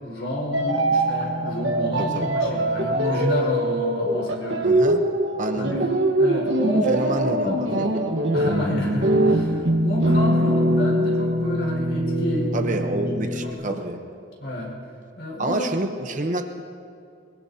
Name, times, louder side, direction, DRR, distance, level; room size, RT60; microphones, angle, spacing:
voice 1, 0.0-4.7 5.5-5.9 6.1-7.2 7.5-7.9 8.3-12.8 13.2-13.8 14.4-14.7 15.2-15.9, left 1 dB, 65° left, -3 dB, 5.1 m, -30 dB
sound 1, 0.5-13.5, right 1 dB, 70° right, 1.4 m, -22 dB
voice 2, 2.0-2.3 4.6-5.0 5.4-5.7 6.9-7.9 12.5-14.0 15.4-16.6, right 2 dB, 40° right, 6 dB, 0.9 m, -28 dB
23.0 x 22.5 x 2.8 m, 2.4 s
head